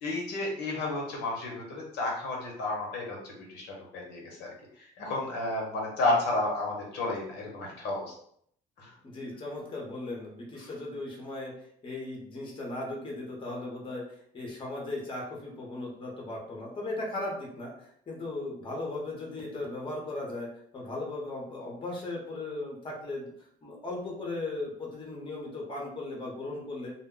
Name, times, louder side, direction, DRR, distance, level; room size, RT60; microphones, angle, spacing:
voice 1, 0.0-3.2 3.5-4.5 5.0-8.1 8.8-8.9, left 2 dB, 85° left, -1 dB, 0.9 m, -31 dB
voice 2, 9.0-11.5 11.8-14.0 14.3-20.5 20.7-23.3 23.6-26.9, left 2 dB, 30° left, -1 dB, 0.9 m, -37 dB
2.1 x 2.0 x 3.7 m, 0.67 s
cardioid pair, 110°, 17 cm